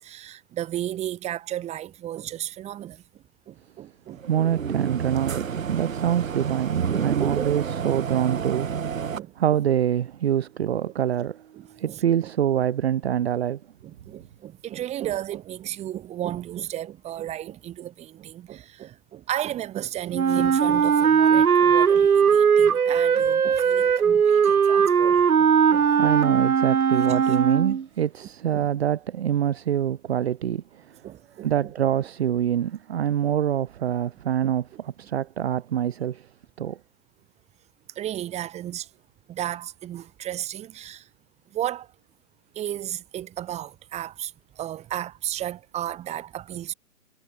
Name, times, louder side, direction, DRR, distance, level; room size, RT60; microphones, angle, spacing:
voice 1, 0.0-3.0 3.5-4.2 9.2-9.6 11.5-12.0 13.8-26.1 27.0-27.4 28.5-28.7 31.0-31.8 34.4-34.5 38.0-38.9 39.3-41.0 41.5-41.9 42.6-44.3 44.6-46.7, right 12 dB, 15° right, 5.8 m, -34 dB
voice 2, 4.2-5.4 5.7-13.6 26.0-31.0 31.4-36.3 36.6-36.8, right 10 dB, 45° right, 1.0 m, -25 dB
sound 1, 4.2-9.2, right 7 dB, 65° right, 2.5 m, -29 dB
Wind instrument woodwind instrument, 20.1-27.8, right 7 dB, 85° right, 1.2 m, -19 dB
hypercardioid pair, 145°, 43 cm